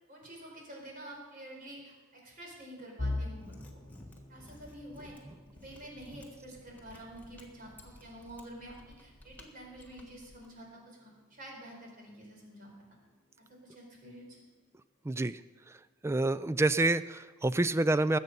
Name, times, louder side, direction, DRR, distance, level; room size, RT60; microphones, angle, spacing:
voice 1, 0.1-3.5 4.3-5.2 5.5-12.7 13.5-14.4, right 1 dB, 45° right, -1 dB, 4.3 m, -48 dB
sound 1, 3.0-14.8 15.2-15.5 15.9-16.1 16.9-17.4, left 2 dB, 30° left, 1.0 m, -46 dB
Mechanisms, 3.3-10.5, left 1 dB, 10° left, 1.5 m, -55 dB
voice 2, 15.0-15.4 16.0-18.2, right 2 dB, 15° right, 15 dB, 0.3 m, -27 dB
20.5 x 8.2 x 5.4 m, 1.3 s
head